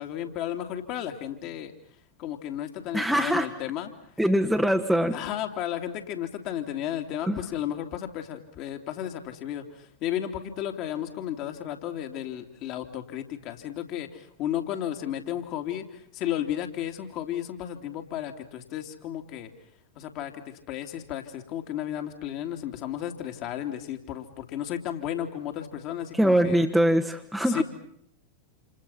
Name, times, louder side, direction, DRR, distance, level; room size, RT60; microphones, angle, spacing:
voice 1, 0.0-1.7 2.2-3.9 5.1-19.5 19.9-26.6 27.4-27.6, left 11 dB, 40° left, 6 dB, 3.1 m, -33 dB
voice 2, 2.9-3.5 4.2-5.2 7.3-7.4 26.2-27.6, equal, ahead, 2 dB, 1.5 m, -22 dB
29.0 x 29.0 x 5.8 m, 0.67 s
figure-of-eight pair, 90°, 0 cm